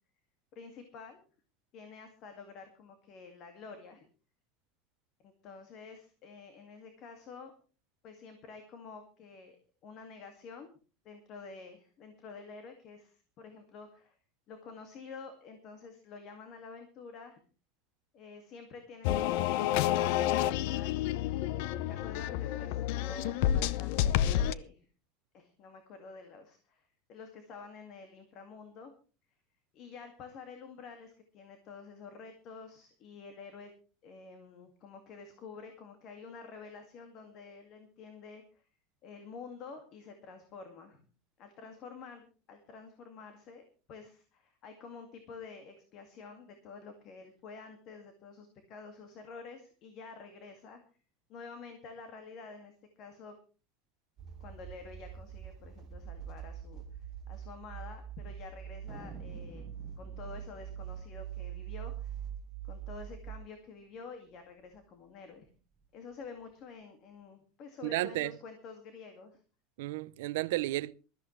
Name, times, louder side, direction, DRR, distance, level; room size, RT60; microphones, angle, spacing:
voice 1, 0.6-1.2 1.7-4.1 5.2-7.5 8.0-9.6 9.8-10.7 11.0-14.1 14.5-17.4 18.1-21.2 21.5-24.9 25.3-28.9 29.7-33.7 34.0-38.6 39.0-41.1 41.4-43.6 43.9-50.8 51.3-53.3 54.4-56.8 57.3-59.7 60.0-62.1 62.6-65.5 65.9-69.4, left 4 dB, 40° left, 2.1 m, -49 dB
sound 1, 19.0-24.5, left 12 dB, 65° left, 0.7 m, -29 dB
sound 2, 54.2-63.4, right 9 dB, 30° right, 2.7 m, -43 dB
Thunder, 58.9-63.7 64.0-64.1 64.3-64.8 65.3-66.5, right 2 dB, 10° right, 2.1 m, -54 dB
voice 2, 67.8-68.3 69.8-70.9, right 18 dB, 80° right, 0.6 m, -32 dB
21.0 x 13.5 x 3.2 m
supercardioid pair, 155°, 0 cm